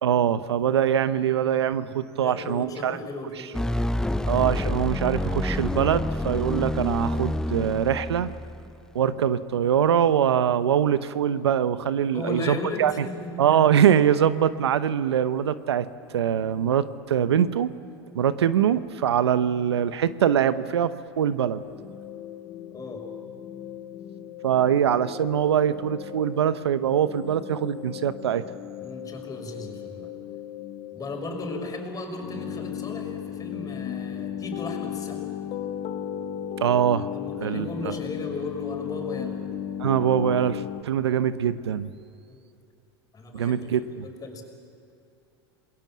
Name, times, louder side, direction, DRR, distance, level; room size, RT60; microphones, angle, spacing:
voice 1, 0.0-3.0 4.3-8.3 8.9-13.1 13.4-17.7 18.1-21.6 24.4-28.4 36.6-37.1 37.4-37.9 39.8-41.9 43.3-44.1, right 9 dB, 90° right, 14 dB, 0.8 m, -23 dB
voice 2, 2.2-4.3 12.1-13.3 22.7-23.1 28.8-30.1 30.9-35.2 37.1-39.4 42.3-42.4 43.1-43.6 44.0-44.4, left 2 dB, 25° left, 3 dB, 5.8 m, -36 dB
sound 1, 3.5-8.8, left 1 dB, 5° left, 0.5 m, -28 dB
sound 2, 21.6-40.8, left 10 dB, 55° left, 1.3 m, -36 dB
28.5 x 21.5 x 7.5 m, 2.7 s
hypercardioid pair, 95°, 14 cm